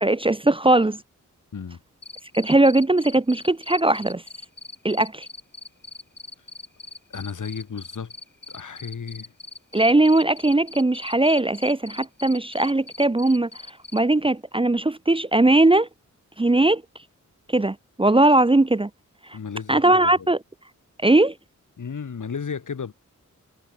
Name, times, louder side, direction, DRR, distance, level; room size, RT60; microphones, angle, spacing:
voice 1, 0.0-1.0 2.3-4.2 4.8-5.3 9.7-13.5 13.9-15.9 16.4-16.8 17.5-18.9 19.7-20.4 21.0-21.3, right 2 dB, 15° right, 0.8 m, -19 dB
Cricket, 2.0-14.0, left 3 dB, 35° left, 5.7 m, -41 dB
voice 2, 7.1-8.1 8.5-9.3 19.3-20.3 21.8-22.9, left 6 dB, 75° left, 4.6 m, -33 dB
wide cardioid pair, 115°, 31 cm